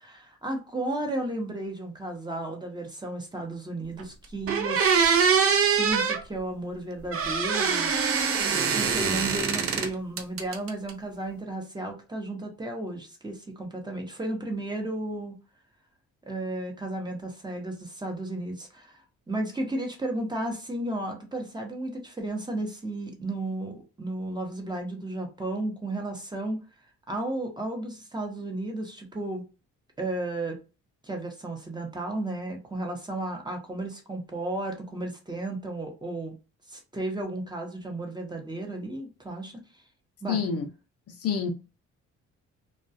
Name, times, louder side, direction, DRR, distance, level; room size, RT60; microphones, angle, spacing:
voice 1, 0.0-7.9 8.7-15.4 16.3-19.0 19.3-26.6 27.1-29.4 30.0-30.6 31.0-36.3 36.7-39.5 40.2-40.4, right 2 dB, 15° right, 0.8 m, -33 dB
sound 1, 4.0-4.1 4.5-6.2 7.1-9.9 10.2-10.9, right 6 dB, 50° right, 0.5 m, -24 dB
voice 2, 40.3-40.7 41.1-41.5, left 6 dB, 55° left, 0.5 m, -28 dB
2.3 x 2.2 x 2.6 m
cardioid pair, 90°, 30 cm